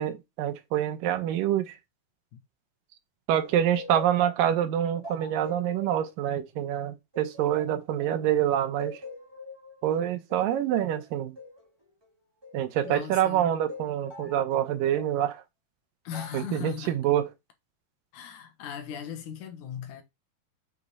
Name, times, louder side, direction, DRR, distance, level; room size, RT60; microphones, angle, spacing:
voice 1, 0.0-1.7 3.3-9.0 9.8-11.4 12.5-15.4 16.3-17.3, right 11 dB, 80° right, 2.5 m, -26 dB
sound 1, 3.3-8.4 8.8-13.1 13.7-15.1 16.1-16.6, left 2 dB, 20° right, 0.7 m, -45 dB
voice 2, 12.8-13.5 16.0-17.0 18.1-20.0, left 8 dB, 70° left, 2.5 m, -38 dB
6.9 x 5.3 x 4.1 m
omnidirectional pair, 3.9 m